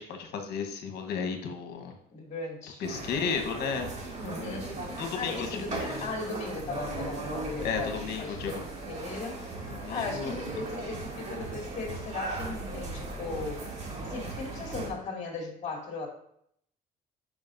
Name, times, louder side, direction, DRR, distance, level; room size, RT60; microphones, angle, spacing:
voice 1, 0.0-2.0 2.8-3.9 4.7-6.0 7.6-8.5 9.7-10.3, left 6 dB, 70° left, 4 dB, 1.2 m, -34 dB
voice 2, 2.1-2.8 4.2-4.8 5.1-9.4 9.8-13.6 14.0-16.1, left 3 dB, 45° left, 0 dB, 2.3 m, -37 dB
sound 1, 2.8-14.9, right 2 dB, 45° right, 2.4 m, -38 dB
11.5 x 4.9 x 2.6 m, 0.70 s
cardioid pair, 110°, 17 cm